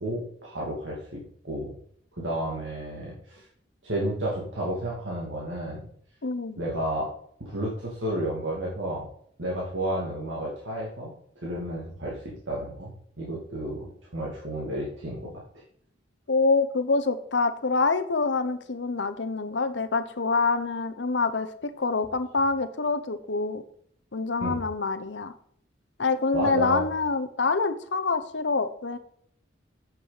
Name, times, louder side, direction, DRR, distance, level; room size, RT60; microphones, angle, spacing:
voice 1, 0.0-1.7 2.2-3.4 3.8-5.9 6.6-7.1 7.4-9.1 9.4-11.1 11.4-13.9 14.1-15.3 24.4-24.6 26.3-26.9, right 1 dB, 90° right, -4 dB, 2.5 m, -31 dB
voice 2, 6.2-6.6 16.3-23.6 24.1-25.3 26.0-29.0, left 4 dB, 70° left, 10 dB, 0.9 m, -26 dB
9.0 x 7.6 x 4.1 m, 0.63 s
head